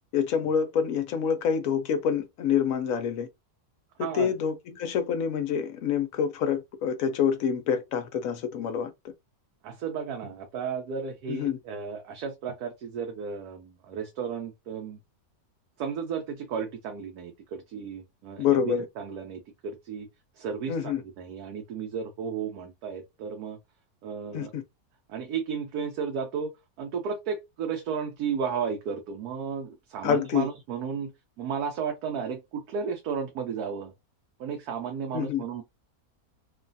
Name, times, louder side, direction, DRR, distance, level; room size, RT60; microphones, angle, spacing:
voice 1, 0.0-3.3 4.1-8.9 11.3-11.6 18.4-18.8 20.7-21.0 24.3-24.6 30.0-30.5 35.1-35.4, left 7 dB, 70° left, 0.9 m, -27 dB
voice 2, 4.0-4.3 9.6-15.0 15.8-20.1 20.3-23.6 24.0-24.5 25.1-26.5 26.8-31.1 31.4-33.9 34.4-35.6, right 6 dB, 85° right, 1.1 m, -33 dB
3.1 x 2.3 x 2.6 m
omnidirectional pair, 1.6 m